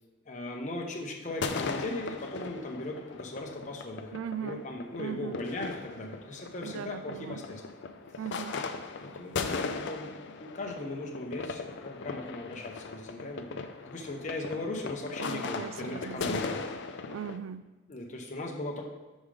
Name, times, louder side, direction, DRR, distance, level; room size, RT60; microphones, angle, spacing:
voice 1, 0.3-7.6 9.0-16.6 17.9-18.8, left 2 dB, 40° left, 0 dB, 0.9 m, -38 dB
sound 1, 1.3-17.4, left 4 dB, 60° left, 0.5 m, -38 dB
voice 2, 4.1-4.6 5.0-5.4 6.6-7.4 8.2-8.6 15.2-16.4 17.1-17.7, right 8 dB, 75° right, 16 dB, 0.3 m, -39 dB
6.2 x 3.6 x 4.9 m, 1.2 s
head